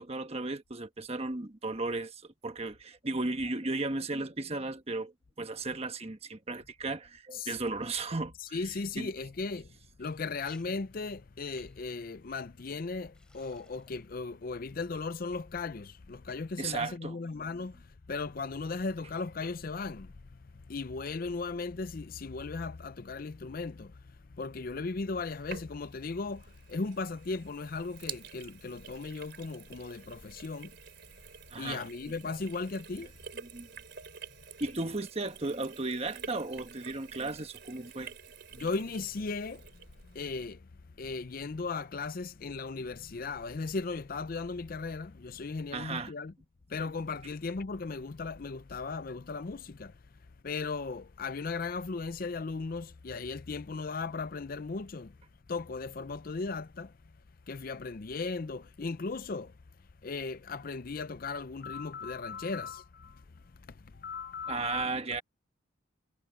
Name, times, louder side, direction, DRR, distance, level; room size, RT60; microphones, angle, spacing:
voice 1, 0.0-8.6 9.0-9.1 16.6-17.2 31.5-31.8 33.5-33.7 34.6-38.1 45.7-46.1 64.5-65.2, right 3 dB, 30° right, 1.2 m, -35 dB
voice 2, 8.4-30.8 31.2-31.3 31.6-33.2 38.5-46.3 46.7-55.2 55.5-57.1 57.5-64.9, left 4 dB, 45° left, 0.5 m, -37 dB
Liquid, 10.0-10.2 10.4-10.6 10.9-11.2 11.6-11.9 12.6-12.7 13.1-14.1 14.4-14.9, left 1 dB, 5° left, 5.5 m, -61 dB
Sink (filling or washing), 25.2-40.3, right 6 dB, 55° right, 4.4 m, -49 dB
head